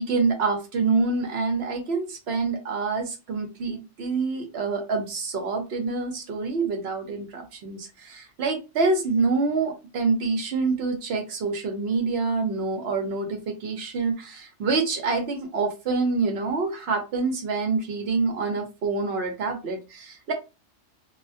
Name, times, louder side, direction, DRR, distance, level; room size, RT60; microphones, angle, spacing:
voice 1, 0.0-20.3, right 4 dB, 60° right, 4 dB, 0.8 m, -26 dB
2.3 x 2.1 x 2.5 m, 0.28 s
omnidirectional pair, 1.3 m